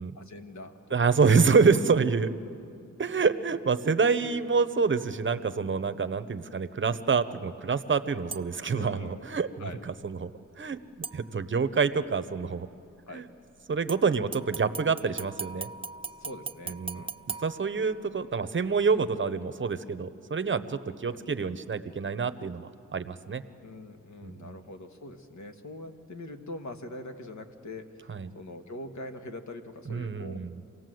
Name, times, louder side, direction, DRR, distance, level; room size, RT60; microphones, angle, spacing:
voice 1, 0.2-0.7 1.0-1.2 3.5-3.6 8.7-9.3 9.6-9.8 13.1-13.2 16.2-17.5 21.1-21.2 23.6-28.1 28.3-30.4, left 2 dB, 60° left, 6 dB, 1.7 m, -43 dB
voice 2, 0.9-2.3 3.0-10.3 10.6-10.8 11.1-12.7 13.1-13.2 13.7-15.7 16.7-17.0 17.4-23.4 24.2-24.6 28.1-28.3 29.9-30.5, right 5 dB, 35° right, 12 dB, 0.9 m, -27 dB
sound 1, 8.3-8.7 11.0-11.7 13.9-18.3 18.7-18.8, right 4 dB, 15° right, 0.5 m, -40 dB
26.5 x 17.5 x 7.8 m, 2.6 s
wide cardioid pair, 100°, 32 cm